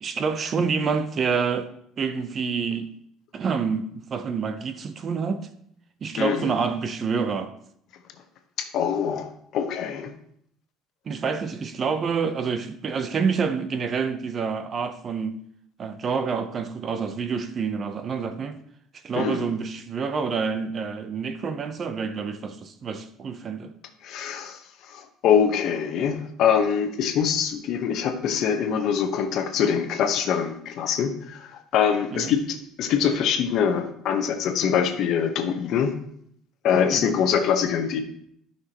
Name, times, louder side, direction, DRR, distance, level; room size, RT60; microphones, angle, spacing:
voice 1, 0.0-2.9 3.3-5.5 6.0-7.5 11.1-15.4 15.8-18.6 19.0-23.7 32.1-32.3 36.9-37.2, right 5 dB, 35° right, 0.6 m, -27 dB
voice 2, 6.2-6.5 8.6-10.1 19.2-19.4 24.0-35.9 36.6-38.0, left 7 dB, 55° left, 1.0 m, -24 dB
12.5 x 5.8 x 2.9 m
cardioid pair, 140°, 0 cm